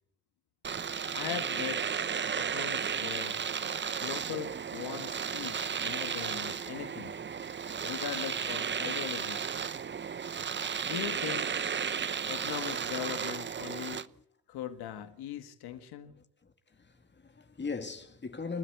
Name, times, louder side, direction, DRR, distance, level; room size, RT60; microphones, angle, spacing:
Domestic sounds home sounds, 0.6-14.1, right 7 dB, 30° right, 0.9 m, -34 dB
voice 1, 1.1-1.8 2.4-3.4 4.0-7.2 7.8-9.4 10.9-11.6 12.3-14.1 14.5-16.1, left 10 dB, 80° left, 1.8 m, -40 dB
voice 2, 16.1-18.6, left 4 dB, 30° left, 2.4 m, -40 dB
29.5 x 13.0 x 8.0 m
cardioid pair, 95°, 38 cm